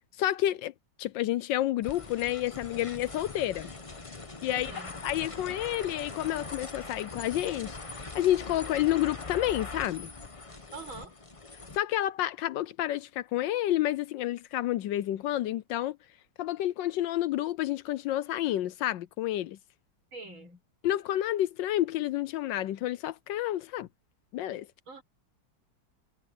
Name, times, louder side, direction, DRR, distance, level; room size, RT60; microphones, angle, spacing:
voice 1, 0.2-0.7 1.0-3.7 4.4-4.7 5.0-10.1 11.7-16.0 16.4-19.6 20.8-23.9 24.3-24.7, left 13 dB, 75° left, 1.2 m, -29 dB
sound 1, 1.8-11.8, left 3 dB, 20° left, 0.9 m, -42 dB
voice 2, 4.5-5.0 10.7-11.2 20.1-20.6 24.9-25.0, right 3 dB, 75° right, 6.7 m, -44 dB
omnidirectional pair, 2.2 m